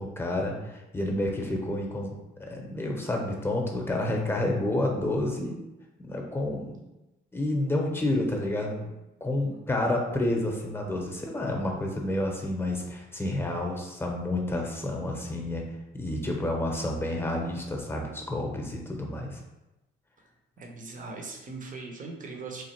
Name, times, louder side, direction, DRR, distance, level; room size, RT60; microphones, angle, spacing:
voice 1, 0.0-5.6 6.0-6.8 7.3-8.9 9.2-15.6 15.9-19.4, left 1 dB, 10° left, 1 dB, 0.8 m, -29 dB
voice 2, 20.6-22.6, right 3 dB, 40° right, 1 dB, 0.8 m, -40 dB
3.2 x 2.4 x 4.3 m, 0.99 s
cardioid pair, 90°, 20 cm